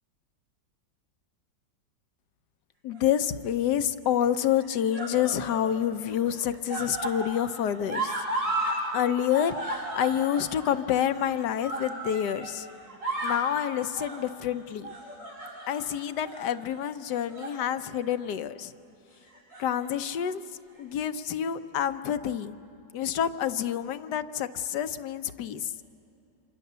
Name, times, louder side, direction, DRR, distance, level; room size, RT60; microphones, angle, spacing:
voice 1, 2.8-8.2 8.9-12.7 13.2-14.9 15.7-18.7 19.6-20.4 20.8-22.6 22.9-25.7, left 10 dB, 70° left, 11 dB, 1.3 m, -28 dB
sound 1, 3.0-3.5 4.4-5.7 6.1-8.8 9.1-12.5 12.9-13.5 14.0-14.3 14.8-15.9 16.2-16.5 17.1-17.6 18.0-18.2 19.3-19.9 20.8-20.9, right 1 dB, 85° right, 8.0 m, -34 dB
27.5 x 26.5 x 6.8 m, 2.7 s
omnidirectional pair, 1.9 m